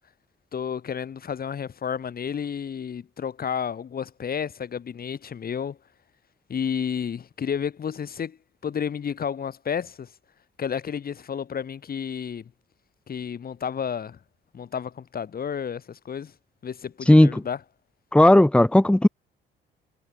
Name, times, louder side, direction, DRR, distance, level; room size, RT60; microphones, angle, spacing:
voice 1, 0.5-5.8 6.5-8.4 8.6-10.1 10.6-12.5 13.1-14.2 14.5-16.3 16.6-17.6, left 7 dB, 50° left, 2.7 m, -31 dB
voice 2, 17.1-17.4 18.1-19.1, left 1 dB, 5° left, 1.7 m, -15 dB
cardioid pair, 90°, 20 cm